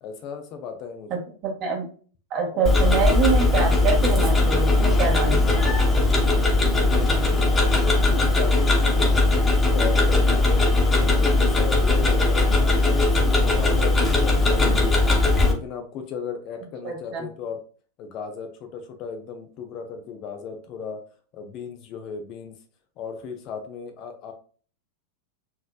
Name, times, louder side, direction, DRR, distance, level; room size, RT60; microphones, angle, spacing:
voice 1, 0.0-1.1 2.5-2.7 5.3-5.4 6.6-15.0 15.5-17.6 18.0-21.0 21.3-22.6 23.0-24.3, left 6 dB, 40° left, 5 dB, 0.8 m, -35 dB
voice 2, 1.1-1.9 2.3-5.7 16.8-17.2, right 6 dB, 40° right, 0 dB, 1.7 m, -26 dB
Tick-tock, 2.6-15.5, left 2 dB, 15° left, 1.4 m, -19 dB
4.5 x 3.6 x 2.3 m, 0.41 s
figure-of-eight pair, 90°, 0 cm